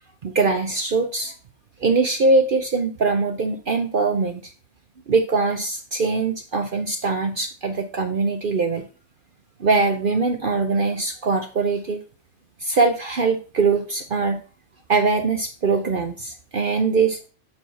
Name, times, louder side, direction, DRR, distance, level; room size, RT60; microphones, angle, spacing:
voice 1, 0.2-1.3 1.8-4.5 5.1-8.9 9.6-12.0 12.6-14.4 14.9-17.2, right 4 dB, 55° right, 6 dB, 0.6 m, -22 dB
7.0 x 4.6 x 3.9 m, 0.36 s
omnidirectional pair, 1.6 m